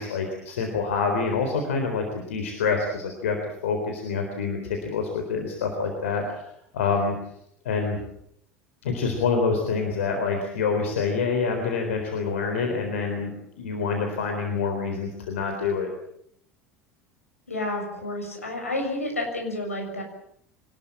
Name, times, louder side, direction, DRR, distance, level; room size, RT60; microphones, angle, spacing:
voice 1, 0.0-3.4 3.6-6.5 6.7-7.1 7.6-8.0 8.8-13.3 13.6-15.9, left 5 dB, 70° left, 4 dB, 3.9 m, -26 dB
voice 2, 17.5-20.0, left 1 dB, 85° left, 2 dB, 6.8 m, -30 dB
24.5 x 20.0 x 7.5 m, 0.71 s
figure-of-eight pair, 70°, 7 cm